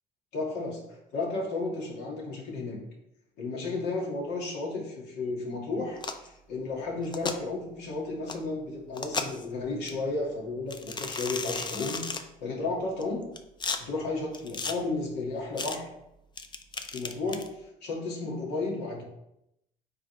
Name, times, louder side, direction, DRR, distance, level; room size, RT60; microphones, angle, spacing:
voice 1, 0.3-2.8 3.4-13.3 13.8-15.9 16.9-19.0, left 3 dB, 80° left, -2 dB, 2.1 m, -33 dB
sound 1, 6.0-6.3 7.0-7.4 8.3-8.4 8.9-9.5 9.9-10.0 10.7-12.2 13.0-13.8 14.3-14.7 15.6-15.8 16.4-17.5, left 4 dB, 25° left, 0.6 m, -34 dB
9.4 x 3.7 x 3.3 m, 0.85 s
cardioid pair, 110°, 17 cm